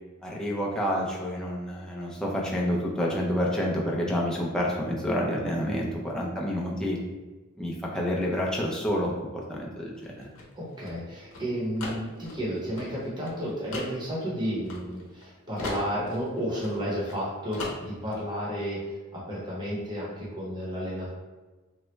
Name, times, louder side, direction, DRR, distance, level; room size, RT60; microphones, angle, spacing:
voice 1, 0.2-7.0 7.6-10.3, equal, 5° left, -4 dB, 0.4 m, -29 dB
sound 1, 10.0-15.3 15.6-17.2 17.5-18.2, left 2 dB, 70° left, 0.7 m, -39 dB
voice 2, 10.5-18.8 19.1-21.1, equal, 20° right, -7 dB, 0.9 m, -32 dB
3.0 x 2.2 x 3.1 m, 1.2 s
head